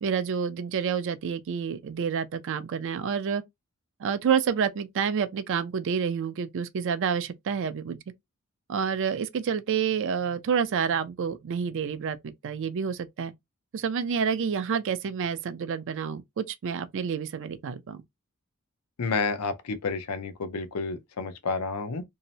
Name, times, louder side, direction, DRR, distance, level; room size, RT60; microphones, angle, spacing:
voice 1, 0.0-3.4 4.0-8.0 8.7-12.2 12.4-13.3 13.7-18.0, right 7 dB, 60° right, 0.4 m, -28 dB
voice 2, 19.0-22.0, left 4 dB, 90° left, 0.6 m, -30 dB
2.7 x 2.0 x 2.7 m
head